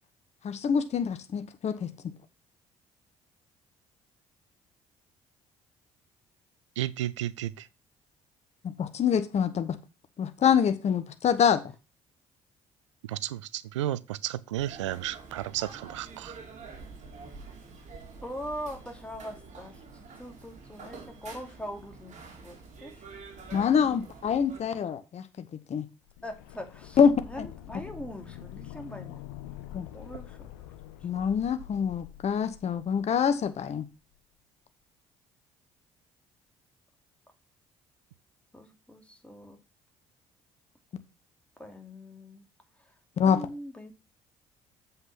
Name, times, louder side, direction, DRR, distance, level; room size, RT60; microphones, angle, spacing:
voice 1, 0.4-1.9 8.6-9.8 10.2-11.6 23.5-25.8 27.0-27.5 29.7-29.9 31.0-33.8 43.2-43.4, left 7 dB, 45° left, 1.0 m, -25 dB
voice 2, 6.8-7.7 13.1-16.4, right 13 dB, 90° right, 0.4 m, -33 dB
sound 1, 14.5-24.6, right 4 dB, 50° right, 2.9 m, -47 dB
voice 3, 18.2-23.1 23.8-24.1 26.2-29.3 29.9-30.7 38.5-39.6 41.6-42.4 42.8-42.9 43.2-43.9, equal, 10° left, 2.7 m, -42 dB
sound 2, 26.0-33.8 34.1-34.2, left 13 dB, 80° left, 0.9 m, -46 dB
7.6 x 5.7 x 5.7 m
hypercardioid pair, 55°, 15 cm